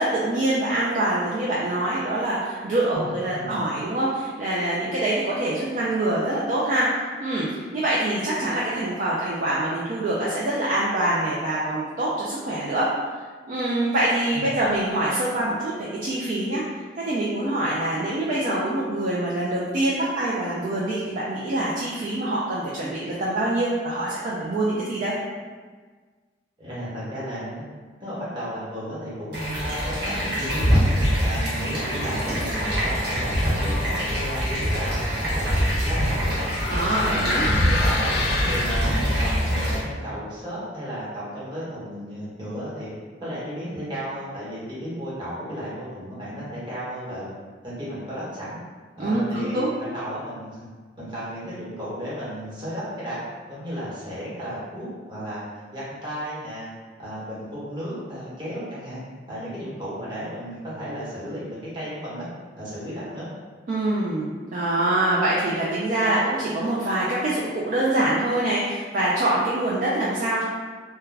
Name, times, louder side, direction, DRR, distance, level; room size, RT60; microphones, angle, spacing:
voice 1, 0.0-6.9 7.2-12.9 13.5-15.7 16.0-16.6 17.1-25.1 36.7-37.4 49.0-49.7 63.7-70.4, right 1 dB, 45° right, -6 dB, 0.3 m, -25 dB
voice 2, 2.9-3.6 14.3-14.4 26.6-27.6 28.0-30.8 31.2-36.5 36.9-37.3 37.6-42.9 43.2-47.3 47.6-48.6 49.0-50.7 51.0-53.2 53.5-56.7 57.0-59.0 59.3-62.3 62.6-63.3, equal, 25° right, -10 dB, 1.0 m, -34 dB
sound 1, 29.3-39.8, equal, 65° right, 0.8 m, -24 dB
sound 2, 35.0-39.3, left 3 dB, 60° left, 0.3 m, -30 dB
2.3 x 2.1 x 3.2 m, 1.5 s
head